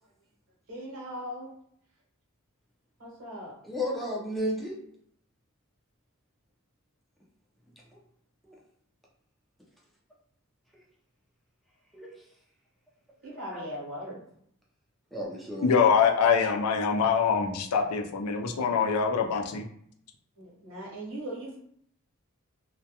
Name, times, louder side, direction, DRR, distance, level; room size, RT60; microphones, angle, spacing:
voice 1, 0.7-1.5 3.0-3.6 13.2-14.2 20.4-21.6, equal, 65° right, -3 dB, 1.0 m, -39 dB
voice 2, 3.6-4.8 7.9-8.0 8.4-8.5 11.9-12.1 13.3-13.7 15.1-15.7, equal, ahead, -4 dB, 0.4 m, -33 dB
voice 3, 15.6-19.6, left 6 dB, 85° left, 4 dB, 0.4 m, -24 dB
2.2 x 2.1 x 2.8 m, 0.67 s
head